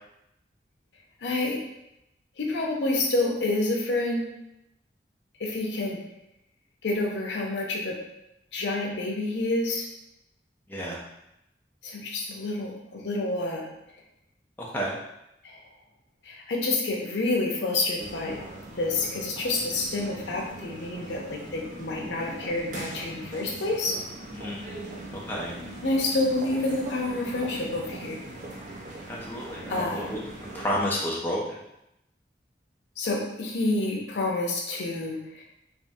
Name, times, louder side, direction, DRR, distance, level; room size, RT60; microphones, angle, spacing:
voice 1, 1.2-1.6 2.4-4.3 5.4-6.0 6.8-8.0 8.5-9.8 11.8-13.7 15.4-15.6 16.3-18.4 18.8-23.9 25.8-28.2 29.7-30.1 33.0-35.4, left 2 dB, 90° left, -1 dB, 0.6 m, -28 dB
voice 2, 10.7-11.0 14.6-15.0 24.3-24.7 25.1-25.6 29.1-30.2 30.5-31.4, equal, 10° left, -4 dB, 0.4 m, -31 dB
sound 1, 18.0-30.8, right 2 dB, 45° right, 0.4 m, -40 dB
3.5 x 2.0 x 2.6 m, 0.86 s
head